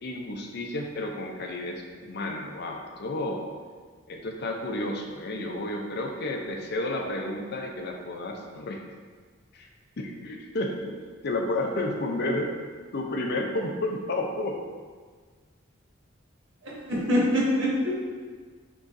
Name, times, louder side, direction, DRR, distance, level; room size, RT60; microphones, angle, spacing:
voice 1, 0.0-3.5 4.1-8.8 9.5-9.7 10.0-11.0 11.2-12.5 12.9-14.6, left 1 dB, 55° left, 2 dB, 0.5 m, -31 dB
voice 2, 16.6-17.9, equal, 70° right, -6 dB, 1.3 m, -24 dB
6.2 x 3.1 x 2.6 m, 1.5 s
head